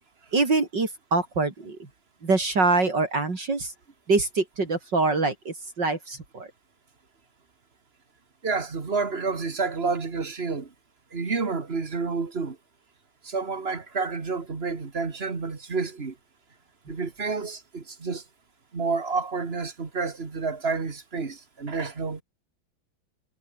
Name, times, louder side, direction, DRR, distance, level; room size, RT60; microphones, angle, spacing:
voice 1, 0.3-1.8 2.2-3.7 4.1-6.5, right 3 dB, 60° right, 4.5 m, -24 dB
voice 2, 8.4-10.7 11.1-12.6 13.2-16.2 16.9-18.2 18.7-22.2, right 4 dB, 30° right, 2.1 m, -29 dB
omnidirectional pair, 2.2 m